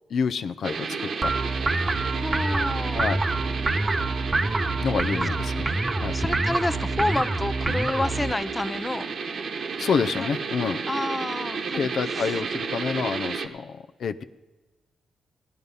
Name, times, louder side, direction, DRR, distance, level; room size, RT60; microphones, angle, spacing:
voice 1, 0.1-0.8 1.2-1.3 2.9-3.2 4.8-5.7 6.0-6.2 9.8-10.8 11.8-13.7 14.0-14.2, left 6 dB, 65° left, 10 dB, 0.5 m, -27 dB
sound 1, 0.6-13.5, right 5 dB, 60° right, 1.1 m, -32 dB
sound 2, 1.2-8.3, right 2 dB, 25° right, 0.7 m, -26 dB
voice 2, 2.1-3.0 6.1-9.1 10.2-10.3 10.9-12.4, left 2 dB, 15° left, 13 dB, 0.5 m, -29 dB
16.5 x 9.7 x 5.4 m, 1.2 s
cardioid pair, 80°, 0 cm